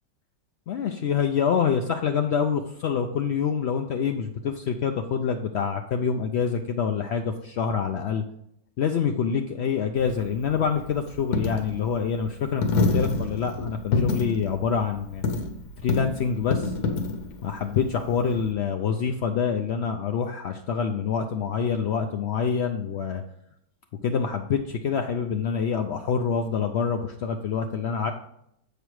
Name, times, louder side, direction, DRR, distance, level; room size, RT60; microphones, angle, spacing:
voice 1, 0.7-8.2 8.8-15.2 15.8-16.7 17.4-23.2 24.0-28.1, left 6 dB, 85° left, 5 dB, 0.5 m, -26 dB
Coin (dropping), 10.0-18.5, left 3 dB, 65° left, 1.3 m, -28 dB
7.5 x 5.1 x 4.7 m, 0.74 s
omnidirectional pair, 1.7 m